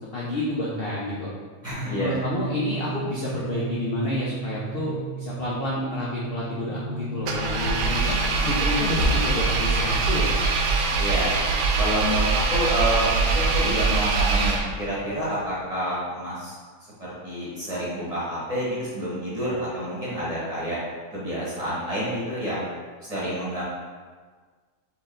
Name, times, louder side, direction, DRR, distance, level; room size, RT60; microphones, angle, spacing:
voice 1, 0.1-1.3 1.9-10.3, left 2 dB, 60° left, -6 dB, 0.6 m, -29 dB
voice 2, 1.6-2.2 11.0-11.3 11.8-16.6 17.0-20.8 21.1-22.7 23.1-23.6, equal, 25° right, -9 dB, 1.4 m, -28 dB
sound 1, 1.7-15.3, right 2 dB, 50° right, 1.0 m, -37 dB
Engine, 7.2-15.0, right 4 dB, 80° right, 1.1 m, -23 dB
4.2 x 3.1 x 3.8 m, 1.5 s
omnidirectional pair, 1.7 m